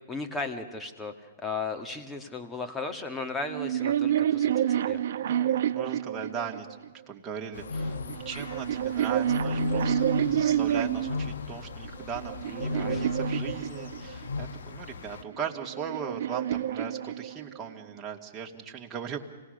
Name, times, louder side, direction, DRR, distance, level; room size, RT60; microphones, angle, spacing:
voice 1, 0.1-5.0 12.5-13.0, left 3 dB, 15° left, 5 dB, 2.1 m, -36 dB
sound 1, 3.5-6.9 7.8-11.2 11.9-14.3 15.3-17.7, right 11 dB, 65° right, 0.8 m, -29 dB
voice 2, 5.2-6.7 7.1-8.0 8.2-10.1 10.3-19.2, right 7 dB, 20° right, 0 dB, 2.3 m, -38 dB
sound 2, 7.5-15.2, left 3 dB, 75° left, 1.2 m, -35 dB
26.5 x 18.5 x 6.7 m, 1.3 s
hypercardioid pair, 130°, 0 cm